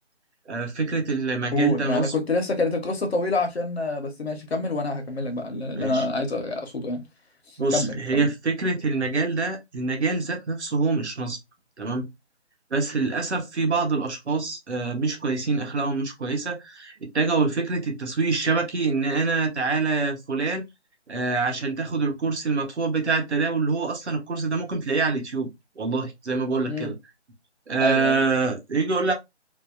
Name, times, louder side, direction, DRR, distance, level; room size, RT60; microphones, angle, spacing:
voice 1, 0.5-2.1 5.8-6.0 7.6-11.4 11.8-12.1 12.7-20.6 21.1-25.5 25.8-27.0 27.7-29.1, right 4 dB, 70° right, 0.9 m, -25 dB
voice 2, 1.5-7.0 7.5-8.3 26.7-26.9 27.8-28.2, left 2 dB, 60° left, 0.9 m, -27 dB
2.7 x 2.1 x 2.3 m
figure-of-eight pair, 160°, 35 cm